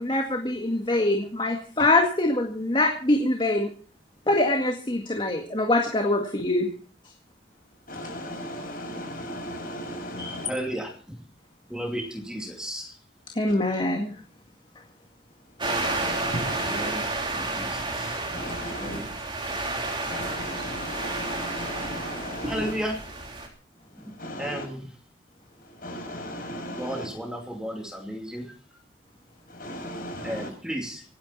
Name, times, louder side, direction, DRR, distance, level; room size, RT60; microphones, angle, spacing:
voice 1, 0.0-3.7 4.3-6.7 10.2-10.4 13.4-14.1, left 2 dB, 25° left, 3 dB, 2.0 m, -24 dB
voice 2, 7.9-10.5 15.6-16.9 18.3-19.0 20.1-22.7 24.2-24.6 25.8-27.1 29.6-30.5, equal, 50° left, 2 dB, 7.1 m, -35 dB
voice 3, 10.5-10.9 11.7-12.9 16.7-17.0 17.3-18.1 18.7-19.4 22.5-23.0 24.4-24.9 26.8-28.5 30.2-31.0, equal, 5° right, 2 dB, 2.6 m, -33 dB
sound 1, 15.6-23.5, right 2 dB, 25° right, 3.7 m, -31 dB
25.5 x 10.5 x 4.3 m, 0.41 s
head